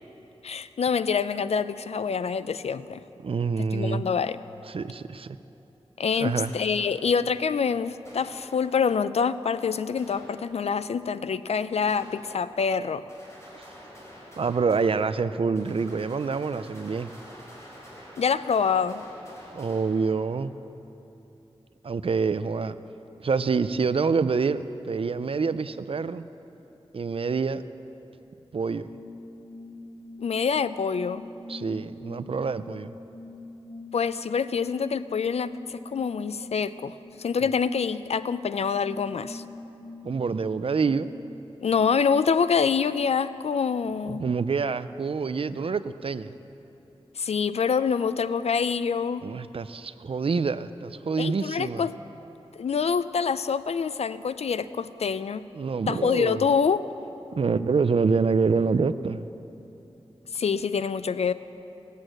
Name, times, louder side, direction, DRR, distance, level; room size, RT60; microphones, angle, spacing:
voice 1, 0.4-3.0 3.7-4.4 6.0-13.1 18.2-19.0 30.2-31.3 33.9-39.4 41.6-44.2 47.2-49.3 51.2-52.0 52.6-55.5 55.9-56.9 60.3-61.3, left 6 dB, 85° left, 14 dB, 0.4 m, -26 dB
voice 2, 3.2-4.1 4.7-5.4 6.2-6.5 13.6-13.7 14.4-17.1 19.5-20.5 21.8-22.8 23.2-26.2 26.9-27.6 28.5-28.9 31.5-32.9 37.4-37.5 40.0-41.1 44.1-46.3 49.2-51.8 55.5-56.5 57.3-59.3, right 5 dB, 60° right, 13 dB, 0.5 m, -26 dB
sound 1, 6.4-7.3 8.1-9.0 10.0-10.9 11.9-12.8 13.1-20.6, equal, 25° left, 4.1 m, -48 dB
sound 2, 28.8-41.2, left 2 dB, 45° left, 0.8 m, -44 dB
17.0 x 8.3 x 7.8 m, 2.9 s
wide cardioid pair, 95°, 11 cm